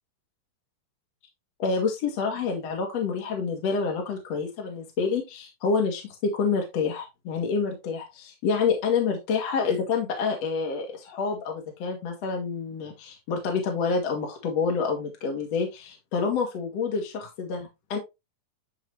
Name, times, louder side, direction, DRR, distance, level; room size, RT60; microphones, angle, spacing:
voice 1, 1.6-18.0, left 5 dB, 50° left, 1 dB, 2.6 m, -28 dB
12.0 x 4.1 x 3.1 m, 0.23 s
omnidirectional pair, 4.1 m